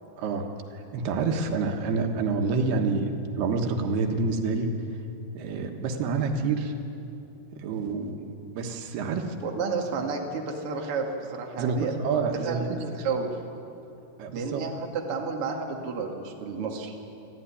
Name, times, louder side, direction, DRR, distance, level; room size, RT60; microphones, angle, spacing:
voice 1, 0.7-4.7 5.3-6.7 7.6-9.3 11.6-12.8 14.2-14.6, right 4 dB, 85° right, 4 dB, 3.4 m, -28 dB
voice 2, 9.4-12.0 12.3-13.3 14.3-16.9, right 4 dB, 40° right, 1 dB, 2.5 m, -31 dB
27.5 x 13.0 x 10.0 m, 2.8 s
omnidirectional pair, 4.5 m